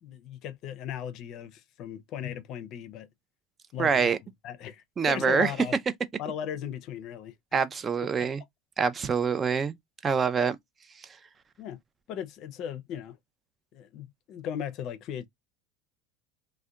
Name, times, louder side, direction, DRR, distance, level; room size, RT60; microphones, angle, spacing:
voice 1, 0.0-3.1 3.7-4.2 4.4-5.7 6.2-7.3 8.2-8.3 11.6-11.8 12.1-13.2 13.7-15.3, left 9 dB, 55° left, 0.5 m, -37 dB
voice 2, 3.8-4.2 5.0-5.5 7.5-8.4 8.8-9.8 10.0-10.6, right 6 dB, 30° right, 0.4 m, -25 dB
2.6 x 2.1 x 2.2 m
supercardioid pair, 105°, 0 cm